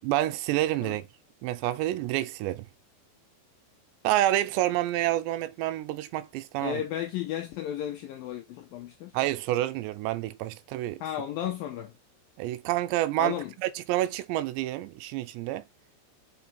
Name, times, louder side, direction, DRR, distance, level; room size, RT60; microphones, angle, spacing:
voice 1, 0.0-1.0 1.4-2.7 4.0-6.8 9.1-11.0 12.4-13.3 13.9-15.6, right 15 dB, 85° right, 2.8 m, -28 dB
voice 2, 6.6-9.2 11.0-11.9 13.2-13.5, left 11 dB, 85° left, 2.0 m, -34 dB
5.5 x 5.5 x 4.3 m
omnidirectional pair, 5.0 m